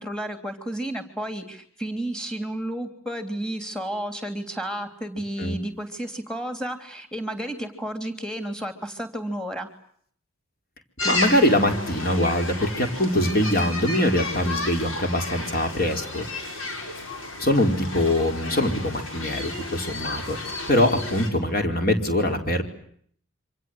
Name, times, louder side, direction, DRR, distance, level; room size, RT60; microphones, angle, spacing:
voice 1, 0.0-9.7, right 1 dB, 5° left, 8 dB, 3.2 m, -32 dB
sound 1, 11.0-21.3, left 2 dB, 80° left, 7.0 m, -32 dB
voice 2, 11.0-16.2 17.4-20.4 20.7-22.6, left 1 dB, 45° left, 5 dB, 4.7 m, -23 dB
28.0 x 26.0 x 8.0 m, 0.63 s
head